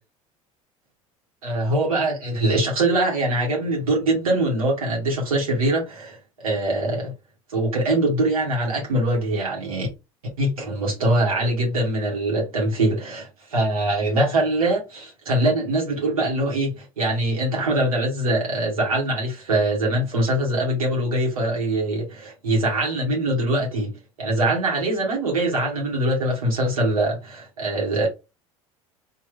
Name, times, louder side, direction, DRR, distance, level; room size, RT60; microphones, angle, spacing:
voice 1, 1.4-7.1 7.5-9.9 10.4-28.1, right 1 dB, 80° right, 1.7 m, -23 dB
3.1 x 3.0 x 3.4 m
hypercardioid pair, 75°, 18 cm